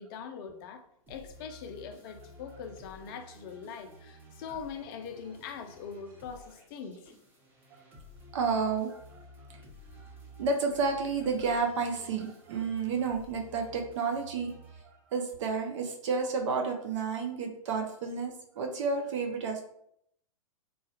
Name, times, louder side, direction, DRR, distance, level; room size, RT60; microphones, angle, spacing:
voice 1, 0.0-7.1, left 6 dB, 40° left, 7 dB, 0.4 m, -42 dB
sound 1, 1.1-15.3, left 1 dB, 10° right, 0.9 m, -53 dB
voice 2, 8.3-9.2 9.5-9.6 10.4-14.5 14.8-19.7, right 4 dB, 55° right, 3 dB, 0.5 m, -31 dB
3.0 x 2.3 x 2.8 m, 0.71 s
hypercardioid pair, 120°, 18 cm